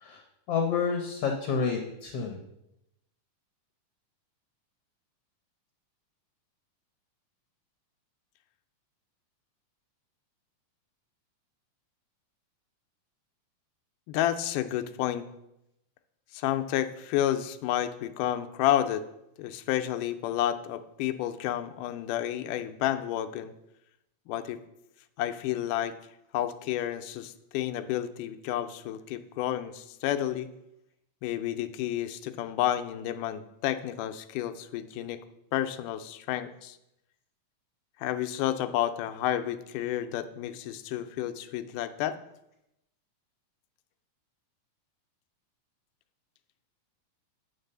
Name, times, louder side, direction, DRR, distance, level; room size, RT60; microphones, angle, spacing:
voice 1, 0.5-2.4, left 6 dB, 70° left, 3 dB, 1.5 m, -29 dB
voice 2, 14.1-15.3 16.3-19.0 19.4-23.5 24.3-24.6 25.2-26.0 26.3-30.5 31.2-35.2 35.5-36.8 38.0-42.2, left 12 dB, 85° left, 10 dB, 2.1 m, -30 dB
9.7 x 4.0 x 6.6 m, 0.84 s
omnidirectional pair, 3.6 m